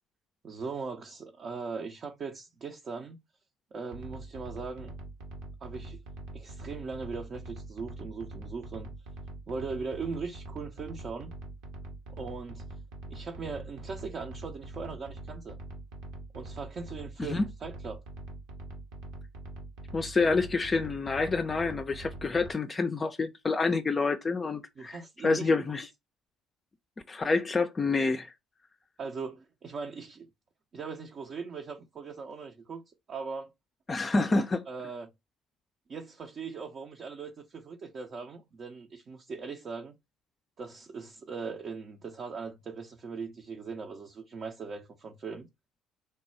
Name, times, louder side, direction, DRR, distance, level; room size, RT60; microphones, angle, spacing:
voice 1, 0.4-3.2 3.7-4.9 5.6-6.0 6.3-8.9 9.5-11.3 12.2-12.6 13.1-15.6 16.3-18.0 24.8-25.6 29.0-30.3 30.7-33.5 34.7-35.1 35.9-39.9 40.6-45.5, right 4 dB, 45° right, 0.5 m, -39 dB
sound 1, 3.9-22.5, right 2 dB, 70° right, 0.9 m, -44 dB
voice 2, 19.9-25.9 27.1-28.3 33.9-34.6, left 3 dB, 30° left, 0.4 m, -28 dB
3.2 x 2.2 x 4.2 m
hypercardioid pair, 60°, 0 cm